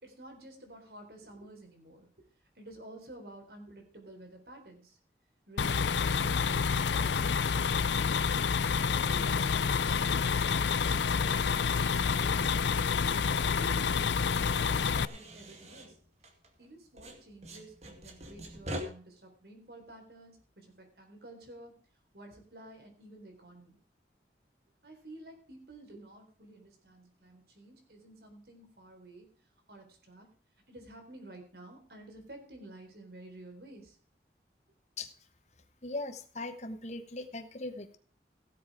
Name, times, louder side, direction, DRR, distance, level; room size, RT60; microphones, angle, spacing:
voice 1, 0.0-2.1 2.6-5.0 5.5-8.4 8.9-13.1 13.5-15.9 16.6-21.7 22.1-23.8 24.8-29.3 29.7-30.3 30.7-34.0, right 1 dB, 65° right, 3 dB, 4.1 m, -51 dB
sound 1, 5.6-15.1, left 6 dB, 85° left, 0.5 m, -28 dB
sound 2, 13.5-16.7 17.0-18.8, right 1 dB, 40° right, 2.2 m, -45 dB
voice 2, 35.8-38.0, left 2 dB, 40° left, 8 dB, 1.1 m, -39 dB
16.5 x 7.7 x 4.9 m, 0.42 s
head